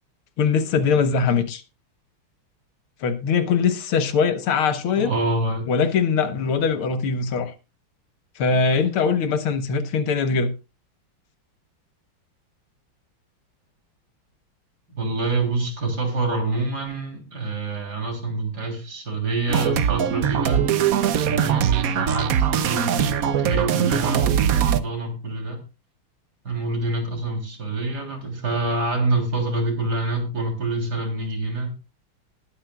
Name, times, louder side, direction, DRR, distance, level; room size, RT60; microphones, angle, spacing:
voice 1, 0.4-1.6 3.0-5.1 5.7-7.5 8.4-10.5, left 5 dB, 80° left, 2.0 m, -21 dB
voice 2, 5.0-5.7 14.9-20.6 21.2-25.6 26.4-31.7, right 2 dB, 45° right, 3.9 m, -26 dB
sound 1, 19.5-24.8, right 9 dB, 70° right, 0.8 m, -21 dB
20.0 x 9.6 x 2.3 m
omnidirectional pair, 2.4 m